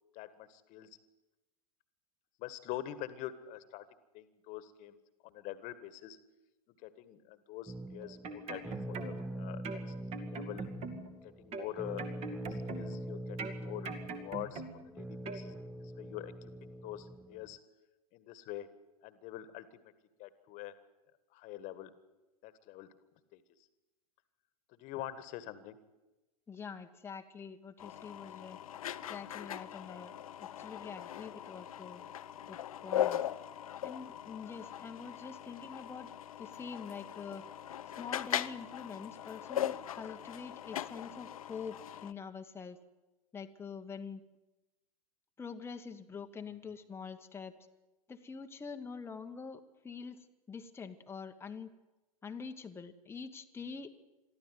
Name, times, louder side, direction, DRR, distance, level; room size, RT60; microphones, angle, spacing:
voice 1, 0.1-1.0 2.4-3.9 4.1-5.0 5.2-6.2 6.7-9.9 10.3-10.7 11.1-12.1 12.5-14.6 15.0-17.6 18.1-18.7 19.0-19.9 20.2-20.7 21.3-21.9 22.4-22.9 23.3-23.4 24.7-25.8, left 13 dB, 40° left, 14 dB, 1.8 m, -45 dB
sound 1, 7.7-17.6, right 1 dB, 5° right, 0.6 m, -43 dB
sound 2, 8.0-9.3 9.6-11.2 11.5-13.0 13.4-14.9 15.3-15.4, right 4 dB, 35° right, 2.5 m, -42 dB
voice 2, 26.5-28.6 29.1-30.1 30.4-32.1 32.5-33.2 33.8-36.1 36.4-37.5 38.0-42.8 43.3-44.2 45.4-47.5 48.1-51.7 52.2-53.9, left 5 dB, 15° left, 5 dB, 1.3 m, -45 dB
sound 3, 27.8-42.1, left 11 dB, 65° left, 0.8 m, -40 dB
23.0 x 14.0 x 9.5 m, 1.0 s
figure-of-eight pair, 95°, 19 cm